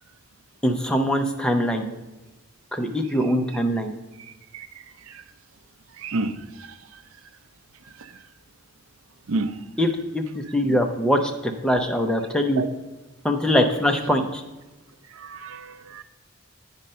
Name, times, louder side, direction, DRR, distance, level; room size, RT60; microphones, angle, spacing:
voice 1, 0.6-1.9 2.7-3.9 9.8-12.6 13.2-14.4, equal, 5° left, 3 dB, 0.6 m, -22 dB
voice 2, 6.0-6.3 6.6-6.8 9.3-9.5 12.6-12.7 15.2-16.0, right 3 dB, 85° right, 11 dB, 0.5 m, -29 dB
8.9 x 5.2 x 5.5 m, 1.1 s
head